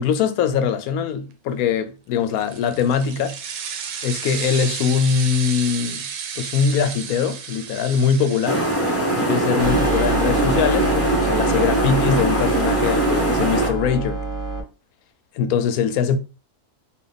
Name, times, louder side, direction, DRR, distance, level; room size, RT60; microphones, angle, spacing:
voice 1, 0.0-3.4 4.0-6.1 6.4-8.7 9.2-14.2 15.3-16.2, left 7 dB, 85° left, 1.1 m, -22 dB
sound 1, 2.3-9.3, right 7 dB, 65° right, 0.9 m, -32 dB
sound 2, 8.5-13.7, right 1 dB, 10° left, 0.9 m, -21 dB
sound 3, 9.6-14.6, right 3 dB, 20° right, 0.6 m, -26 dB
4.1 x 2.6 x 3.3 m
omnidirectional pair, 1.5 m